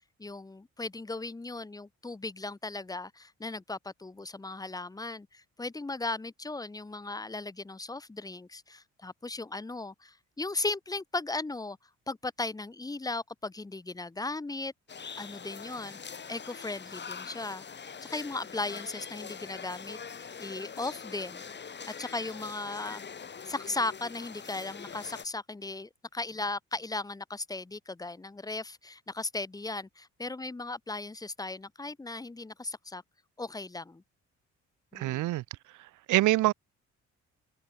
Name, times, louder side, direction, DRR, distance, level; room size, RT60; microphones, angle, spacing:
voice 1, 0.2-11.8 12.1-14.7 15.2-17.6 18.0-21.4 22.0-23.0 23.4-33.0 33.4-34.0 34.9-35.3, left 3 dB, 10° left, 0.8 m, -37 dB
sound 1, 14.9-25.3, left 6 dB, 35° left, 1.8 m, -43 dB
voice 2, 34.9-35.4 36.1-36.5, right 17 dB, 80° right, 0.7 m, -24 dB
cardioid pair, 90°, 30 cm